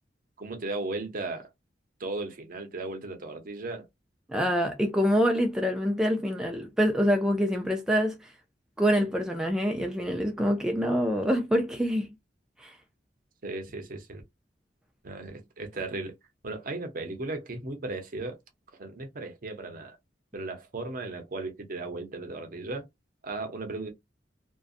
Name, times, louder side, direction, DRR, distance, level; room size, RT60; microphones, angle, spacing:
voice 1, 0.4-1.5 2.0-3.9 13.4-14.2 15.0-16.1 16.4-18.4 18.8-20.0 20.3-22.9 23.2-23.9, right 2 dB, 50° right, 0.7 m, -36 dB
voice 2, 4.3-8.2 8.8-12.1 12.6-12.8, equal, 5° right, 0.3 m, -26 dB
2.6 x 2.2 x 2.4 m
head